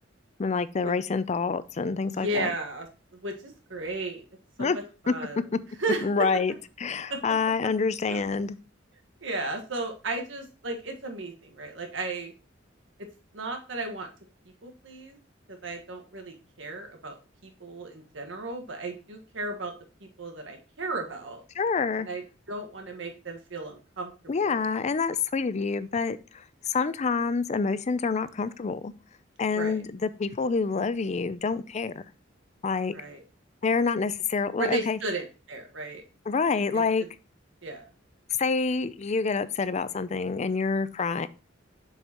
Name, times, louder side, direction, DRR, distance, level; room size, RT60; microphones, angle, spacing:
voice 1, 0.4-2.5 4.6-4.8 5.1-5.2 6.0-6.5 6.8-8.6 21.6-22.1 24.3-26.4 26.7-28.9 29.4-31.9 32.6-32.9 33.6-35.0 36.3-37.0 38.4-41.3, left 4 dB, 35° left, 15 dB, 0.4 m, -27 dB
voice 2, 2.0-4.2 4.6-5.4 5.8-6.3 7.1-7.2 8.1-8.3 9.2-12.3 13.3-14.1 14.6-15.2 15.5-17.2 17.4-19.7 20.0-21.4 22.0-24.1 24.4-24.6 29.5-29.8 32.9-33.2 34.6-36.0 36.7-36.8 37.6-37.8, right 2 dB, 70° right, 4 dB, 1.5 m, -34 dB
6.5 x 6.5 x 2.9 m, 0.32 s
head